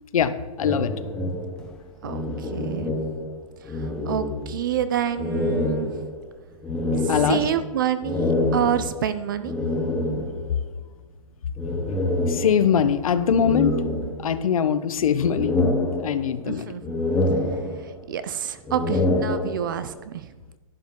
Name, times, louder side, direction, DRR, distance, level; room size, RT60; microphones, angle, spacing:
voice 1, 0.1-0.9 7.1-7.4 12.3-13.8 14.2-15.6 16.0-16.7, left 8 dB, 70° left, 12 dB, 0.9 m, -22 dB
sound 1, 0.6-3.4 3.7-4.8 5.2-10.6 11.6-12.9 13.3-14.6 15.0-16.5 16.8-18.1 18.6-19.9, left 2 dB, 5° left, 0.7 m, -26 dB
voice 2, 2.0-2.9 3.7-6.1 6.9-9.6 16.4-17.1 17.8-20.3, right 10 dB, 35° right, 13 dB, 0.5 m, -28 dB
11.5 x 9.9 x 3.8 m, 1.1 s
hypercardioid pair, 175°, 18 cm